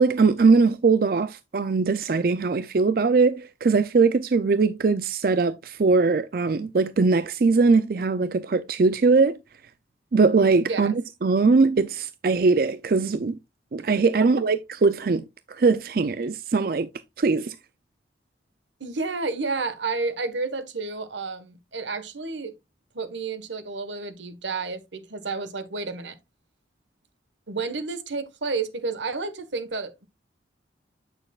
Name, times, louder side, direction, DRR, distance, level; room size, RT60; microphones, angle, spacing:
voice 1, 0.0-9.4 10.1-13.4 13.7-16.9 17.2-17.6, right 4 dB, 50° right, 0.4 m, -21 dB
voice 2, 18.8-22.5 22.9-26.1 27.5-30.1, right 4 dB, 85° right, 1.4 m, -31 dB
8.6 x 6.6 x 2.4 m
head